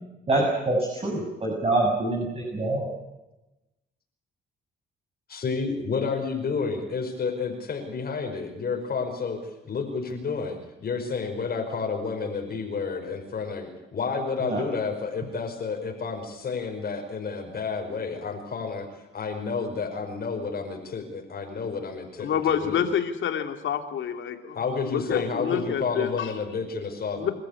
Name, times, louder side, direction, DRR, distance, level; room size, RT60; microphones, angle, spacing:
voice 1, 0.3-2.9 14.4-14.6, right 2 dB, 30° right, -1 dB, 7.4 m, -25 dB
voice 2, 5.3-9.4 9.6-18.9 19.1-22.9 24.5-27.3, left 5 dB, 50° left, 2 dB, 5.3 m, -30 dB
voice 3, 22.2-24.6 24.8-26.3 27.1-27.3, left 8 dB, 75° left, 6 dB, 3.0 m, -28 dB
28.5 x 14.0 x 8.5 m, 0.98 s
cardioid pair, 90°, 20 cm